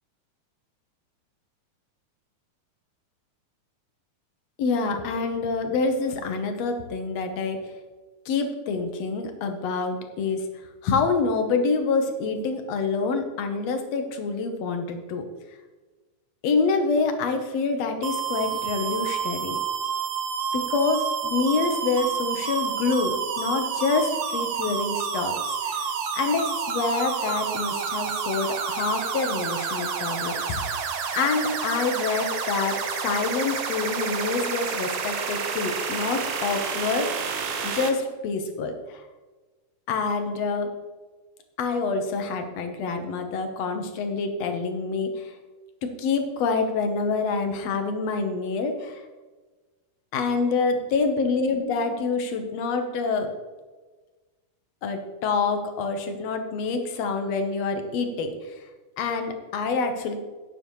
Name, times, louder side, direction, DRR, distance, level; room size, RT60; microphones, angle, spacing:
voice 1, 4.6-7.7 8.3-10.4 10.8-15.3 16.4-19.6 20.5-25.9 26.1-30.6 31.1-37.1 37.6-39.0 39.9-40.7 41.6-45.4 45.8-49.0 50.1-53.3 54.8-58.7 59.0-60.1, left 4 dB, 65° left, 6 dB, 2.0 m, -27 dB
sound 1, 18.0-37.9, right 6 dB, 70° right, 1.1 m, -29 dB
12.0 x 9.7 x 3.1 m, 1.3 s
omnidirectional pair, 3.5 m